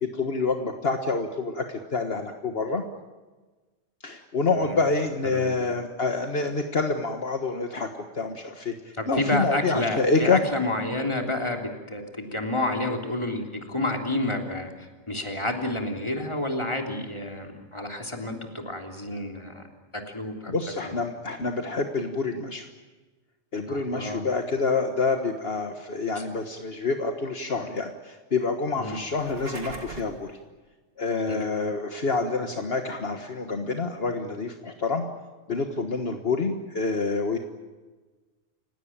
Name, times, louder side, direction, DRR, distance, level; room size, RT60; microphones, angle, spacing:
voice 1, 0.0-2.8 4.0-10.4 20.5-22.7 23.5-30.4 31.0-35.0 35.5-37.4, left 4 dB, 60° left, 5 dB, 1.7 m, -27 dB
voice 2, 5.2-5.5 9.0-14.7 15.1-19.6 19.9-20.5 23.7-24.2 26.2-26.3 28.8-29.0 31.3-31.4, left 1 dB, 25° left, 2 dB, 3.5 m, -29 dB
sound 1, 29.1-30.2, right 2 dB, 65° right, 3.0 m, -39 dB
30.0 x 18.0 x 8.8 m, 1.3 s
omnidirectional pair, 1.2 m